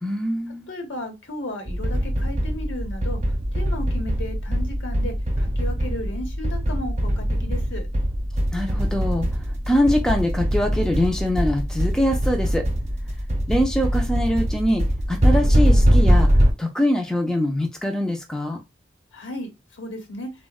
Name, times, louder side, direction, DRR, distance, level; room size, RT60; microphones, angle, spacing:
voice 1, 0.0-0.7 8.5-12.7 13.5-16.3 16.6-18.6, equal, 5° left, 0.3 m, -23 dB
voice 2, 0.7-3.2 3.5-7.9 19.1-20.3, left 1 dB, 75° left, 0.9 m, -34 dB
sound 1, 1.7-16.5, equal, 35° right, 0.7 m, -22 dB
3.5 x 2.1 x 2.3 m
head